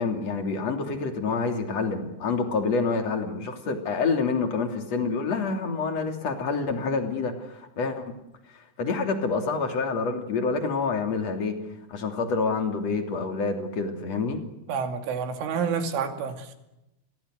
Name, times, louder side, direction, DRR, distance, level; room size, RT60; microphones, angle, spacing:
voice 1, 0.0-8.0 8.5-11.6 11.9-14.4, left 4 dB, 40° left, 5 dB, 3.5 m, -27 dB
voice 2, 14.7-16.6, right 6 dB, 80° right, 7 dB, 4.9 m, -29 dB
28.5 x 22.0 x 6.6 m, 0.90 s
omnidirectional pair, 5.5 m